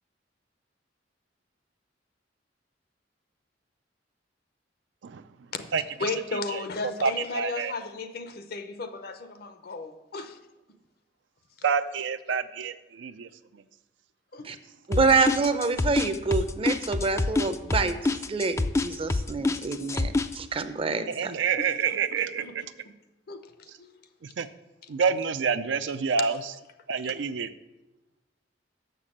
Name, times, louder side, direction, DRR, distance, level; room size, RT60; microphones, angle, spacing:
voice 1, 6.0-10.4 14.3-14.5 21.6-22.6 23.3-23.4 23.8-24.0, left 4 dB, 55° left, 9 dB, 0.7 m, -35 dB
voice 2, 6.5-7.7 11.6-13.3 21.1-22.6 24.4-24.5 24.9-26.4 26.9-27.5, right 6 dB, 80° right, 12 dB, 0.5 m, -28 dB
sound 1, 14.9-20.3, left 2 dB, 15° left, 0.3 m, -26 dB
voice 3, 14.9-18.0 18.3-21.3, right 4 dB, 30° right, 10 dB, 0.6 m, -26 dB
6.7 x 6.5 x 7.2 m, 1.0 s
head